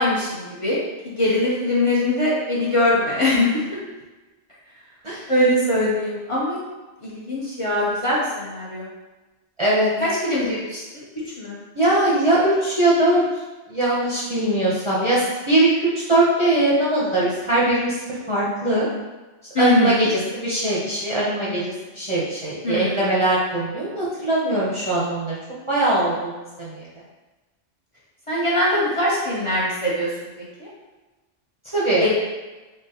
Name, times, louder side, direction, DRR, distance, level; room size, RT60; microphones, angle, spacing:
voice 1, 0.0-3.8 5.3-6.6 7.0-8.9 10.0-10.8 11.4-11.6 19.5-20.1 22.6-23.1 28.3-30.1 30.6-30.7 32.0-32.1, left 1 dB, 30° left, -7 dB, 0.7 m, -22 dB
voice 2, 9.6-9.9 11.7-13.2 13.7-18.0 18.3-18.9 19.6-20.1 20.3-25.4 25.7-26.9 31.7-32.1, right 1 dB, 30° right, -8 dB, 0.7 m, -21 dB
3.7 x 3.5 x 2.8 m, 1.2 s
omnidirectional pair, 1.2 m